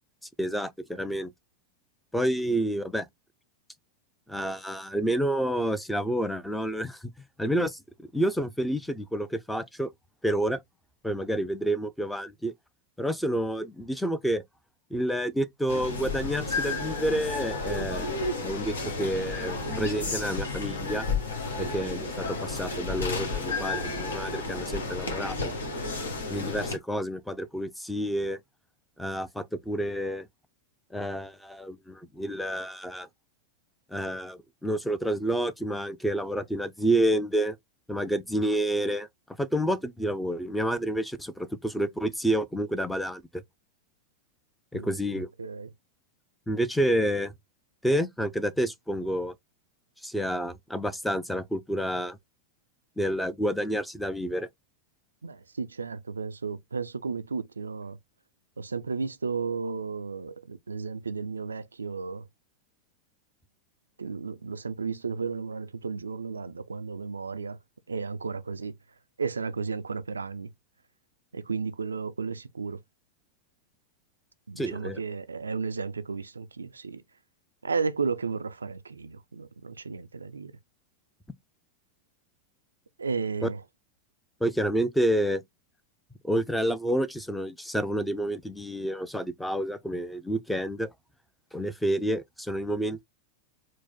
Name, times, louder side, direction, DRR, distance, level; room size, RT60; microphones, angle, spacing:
voice 1, 0.4-1.3 2.1-3.1 4.3-7.1 7.4-7.8 8.1-9.9 10.2-10.6 11.0-12.5 13.0-14.4 14.9-21.1 21.6-25.5 26.3-28.4 29.0-30.3 30.9-33.1 33.9-37.6 37.9-39.1 39.4-43.4 44.7-45.3 46.5-47.3 47.8-49.3 50.0-52.2 53.0-54.5 74.6-75.0 83.4-83.5 84.4-85.4 86.2-90.9 91.5-93.0, right 1 dB, 5° left, 0.6 m, -29 dB
sound 1, 15.7-26.8, left 3 dB, 70° left, 1.4 m, -32 dB
voice 2, 44.7-45.7 55.2-58.0 58.6-62.2 64.0-67.6 67.9-68.7 69.2-70.5 71.3-72.8 74.5-77.0 77.6-80.5 83.0-83.6, right 5 dB, 75° right, 0.3 m, -33 dB
4.6 x 2.1 x 4.1 m
figure-of-eight pair, 90°, 0 cm